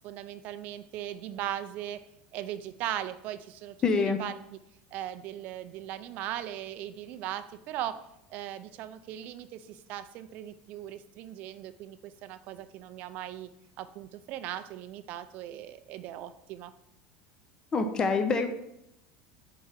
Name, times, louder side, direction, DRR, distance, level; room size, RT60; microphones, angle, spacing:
voice 1, 0.0-2.0 2.3-4.6 4.9-8.0 8.3-13.5 13.8-16.7, right 12 dB, 40° right, 11 dB, 0.4 m, -39 dB
voice 2, 3.8-4.2 17.7-18.5, left 4 dB, 15° left, 8 dB, 0.5 m, -25 dB
4.8 x 4.6 x 5.5 m, 0.81 s
cardioid pair, 175°, 4 cm